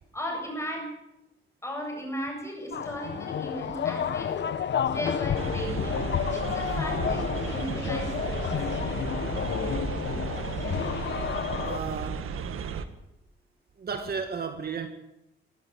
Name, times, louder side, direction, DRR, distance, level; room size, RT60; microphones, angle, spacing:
voice 1, 0.1-0.9 1.6-4.5 4.8-6.0 6.3-8.5, equal, 15° left, 1 dB, 7.8 m, -36 dB
sound 1, 2.7-11.8, left 8 dB, 55° left, 1.1 m, -30 dB
sound 2, 5.3-12.8, right 6 dB, 85° right, 1.8 m, -34 dB
voice 2, 11.6-12.3 13.8-14.9, right 5 dB, 50° right, 6 dB, 2.0 m, -34 dB
23.0 x 13.5 x 9.9 m, 0.85 s
wide cardioid pair, 145°, 21 cm